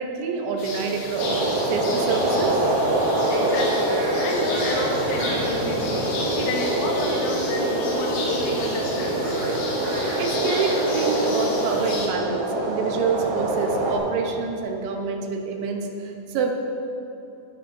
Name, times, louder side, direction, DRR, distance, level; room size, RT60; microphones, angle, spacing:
voice 1, 0.0-2.6 10.2-16.5, right 5 dB, 80° right, 2 dB, 3.1 m, -27 dB
sound 1, 0.6-12.1, left 1 dB, 65° left, 3.4 m, -33 dB
sound 2, 1.2-14.0, right 1 dB, 60° right, 2.2 m, -25 dB
voice 2, 3.3-3.9 4.2-9.4, left 2 dB, 85° left, -1 dB, 3.8 m, -30 dB
19.0 x 9.7 x 2.7 m, 2.8 s
omnidirectional pair, 5.3 m